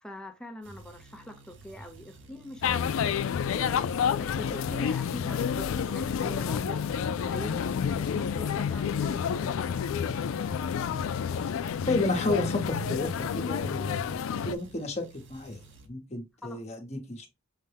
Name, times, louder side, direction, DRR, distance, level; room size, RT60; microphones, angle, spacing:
voice 1, 0.0-2.9 3.5-7.7 7.9-9.9 16.4-16.7, left 1 dB, 5° left, 0.6 m, -43 dB
sound 1, 0.6-15.9, right 2 dB, 60° right, 0.8 m, -52 dB
sound 2, 2.6-14.5, left 7 dB, 65° left, 0.3 m, -29 dB
voice 2, 11.9-15.6 15.9-17.3, left 2 dB, 30° left, 1.0 m, -32 dB
6.5 x 2.2 x 3.3 m
head